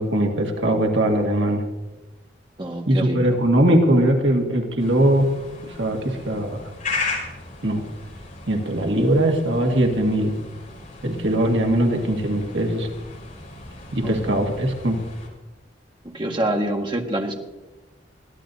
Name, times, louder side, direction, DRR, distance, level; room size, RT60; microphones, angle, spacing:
voice 1, 0.0-1.6 2.9-5.3 5.6-6.7 7.6-7.8 8.5-10.3 11.0-12.9 13.9-15.0, right 1 dB, 90° right, 2 dB, 2.0 m, -20 dB
voice 2, 2.6-3.4 14.0-14.4 16.0-17.4, right 1 dB, 30° right, 2 dB, 1.7 m, -27 dB
sound 1, 4.8-15.3, left 3 dB, 45° left, 5.1 m, -36 dB
22.0 x 14.5 x 2.8 m, 1.1 s
head